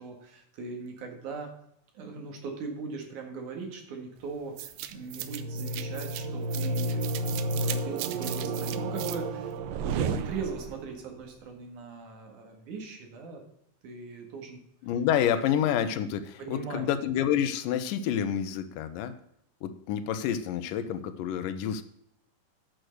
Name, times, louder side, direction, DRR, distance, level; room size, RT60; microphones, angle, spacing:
voice 1, 0.0-1.5 1.9-9.5 9.8-13.4 13.8-14.6 16.4-16.9, right 4 dB, 70° right, 2 dB, 3.1 m, -39 dB
sound 1, 4.6-10.9, right 3 dB, 90° right, 2.4 m, -31 dB
voice 2, 14.8-19.1 19.6-21.8, left 9 dB, 85° left, 11 dB, 2.4 m, -28 dB
9.1 x 6.4 x 6.4 m, 0.75 s
omnidirectional pair, 3.8 m